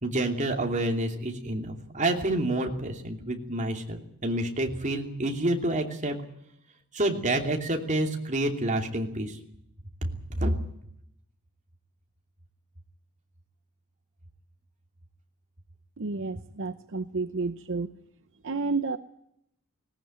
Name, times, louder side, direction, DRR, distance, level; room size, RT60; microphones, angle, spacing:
voice 1, 0.0-6.2 6.9-9.4 10.1-10.6, right 1 dB, 35° right, 3 dB, 2.8 m, -28 dB
voice 2, 16.0-17.9 18.4-19.0, right 3 dB, 60° right, 11 dB, 0.8 m, -31 dB
19.0 x 19.0 x 9.0 m, 0.76 s
head